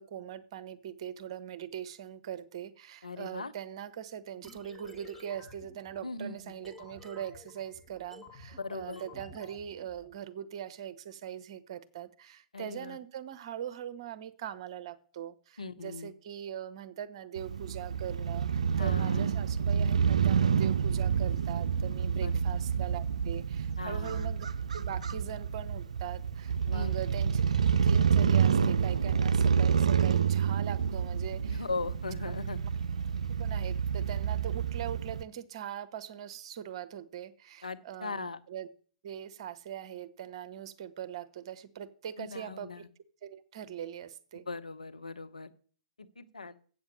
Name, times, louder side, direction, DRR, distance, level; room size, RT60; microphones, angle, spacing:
voice 1, 0.0-24.5 24.7-31.7 33.3-38.7 39.0-42.8 43.2-44.5, right 9 dB, 50° right, 13 dB, 0.9 m, -41 dB
voice 2, 3.0-3.5 6.0-6.5 8.6-9.0 12.5-13.0 15.6-16.1 18.8-19.3 22.2-22.3 23.8-24.3 26.7-26.9 31.5-32.6 37.6-38.4 42.2-42.8 44.5-45.5 46.0-46.6, left 4 dB, 75° left, 10 dB, 0.8 m, -39 dB
sound 1, 4.4-10.1, left 2 dB, ahead, 1.6 m, -53 dB
Crow / Motorcycle, 17.4-35.2, right 7 dB, 70° right, 0.4 m, -28 dB
8.2 x 7.1 x 6.7 m, 0.44 s
figure-of-eight pair, 110°, 4 cm